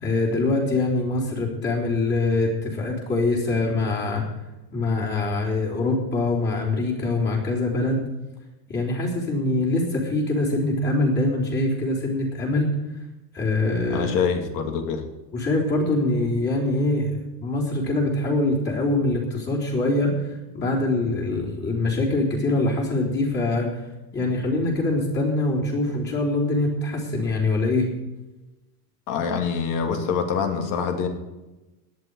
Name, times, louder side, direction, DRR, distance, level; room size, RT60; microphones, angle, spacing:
voice 1, 0.0-4.2 4.7-8.0 8.7-12.7 13.3-14.3 15.3-17.1 17.4-23.8 24.1-27.9, left 2 dB, 20° left, -4 dB, 3.7 m, -24 dB
voice 2, 13.9-15.0 29.1-31.1, left 6 dB, 40° left, 5 dB, 2.6 m, -25 dB
17.5 x 11.0 x 4.8 m, 1.1 s
supercardioid pair, 145°, 47 cm